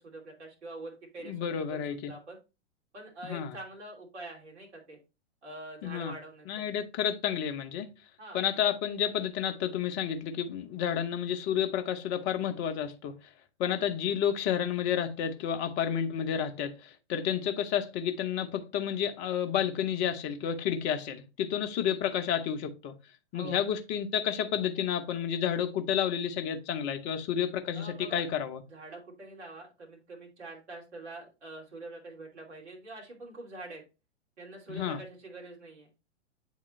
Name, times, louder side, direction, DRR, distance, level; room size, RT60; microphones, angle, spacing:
voice 1, 0.0-2.4 2.9-5.0 5.4-6.6 8.2-8.4 23.3-23.7 27.7-28.2 28.7-33.8 34.4-35.9, right 2 dB, 65° right, 3.0 m, -45 dB
voice 2, 1.2-2.1 3.2-3.5 5.8-6.1 6.5-7.9 8.3-13.1 13.6-22.9 23.3-28.6 34.7-35.0, left 9 dB, 30° left, 0.9 m, -30 dB
8.5 x 3.7 x 3.1 m
figure-of-eight pair, 110°, 36 cm